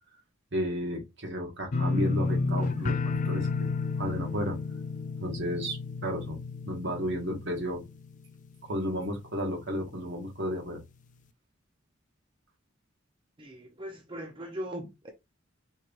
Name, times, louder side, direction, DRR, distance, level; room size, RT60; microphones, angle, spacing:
voice 1, 0.5-2.9 3.2-3.5 4.0-4.6 5.2-6.4 6.6-7.8 8.7-10.8, equal, 65° right, 1.5 m, -32 dB
sound 1, 1.7-8.6 8.9-9.4 9.8-9.9, left 3 dB, 40° left, 0.4 m, -31 dB
voice 2, 13.4-15.1, equal, 25° right, 0.7 m, -39 dB
4.4 x 3.2 x 2.5 m
head